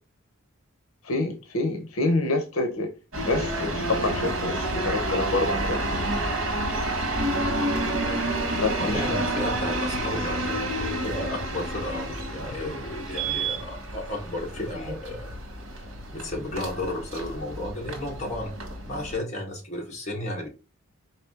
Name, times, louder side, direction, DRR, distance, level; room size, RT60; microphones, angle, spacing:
voice 1, 1.0-2.9 3.3-6.0 8.5-9.0, left 2 dB, 80° left, 0.8 m, -27 dB
sound 1, 3.1-19.2, right 1 dB, 75° right, 1.5 m, -29 dB
voice 2, 8.8-15.4 16.1-18.5 18.9-20.5, left 1 dB, 35° left, 1.5 m, -33 dB
4.8 x 2.7 x 3.7 m
head